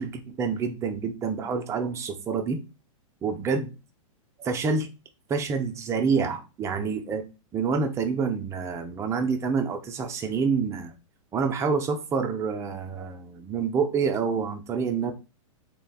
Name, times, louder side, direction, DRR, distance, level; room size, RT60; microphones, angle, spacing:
voice 1, 0.0-2.6 3.2-3.7 4.4-4.9 5.3-7.2 7.5-10.9 11.3-15.1, right 5 dB, 15° right, 0.4 m, -27 dB
3.2 x 2.2 x 2.3 m
hypercardioid pair, 125°, 18 cm